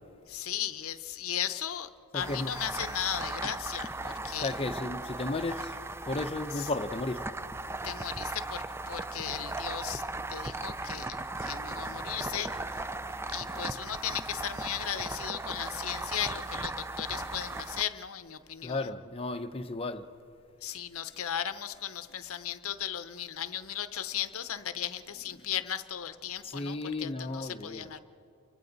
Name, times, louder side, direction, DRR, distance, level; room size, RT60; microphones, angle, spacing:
voice 1, 0.3-4.5 6.6-6.7 7.8-10.0 10.3-12.5 13.3-18.9 20.6-28.0, left 10 dB, 65° left, 0.7 m, -36 dB
voice 2, 2.1-2.5 4.3-5.7 6.0-7.4 18.6-20.1 25.3-25.4 26.4-27.9, left 2 dB, 25° left, 0.7 m, -34 dB
sound 1, 2.2-17.8, right 2 dB, 10° right, 0.4 m, -37 dB
29.5 x 24.5 x 4.0 m
head